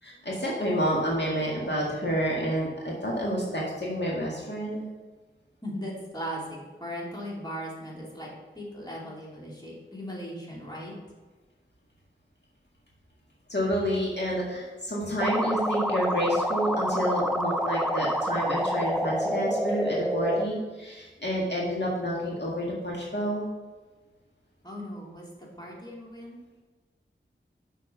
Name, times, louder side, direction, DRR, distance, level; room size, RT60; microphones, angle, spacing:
voice 1, 0.0-4.8 13.5-23.5, equal, 55° left, -4 dB, 2.0 m, -29 dB
voice 2, 5.6-10.9 24.6-26.4, equal, 20° left, -4 dB, 2.7 m, -38 dB
sound 1, 15.2-20.4, right 1 dB, 5° right, 0.6 m, -28 dB
7.1 x 5.8 x 5.7 m, 1.3 s
wide cardioid pair, 50°, 21 cm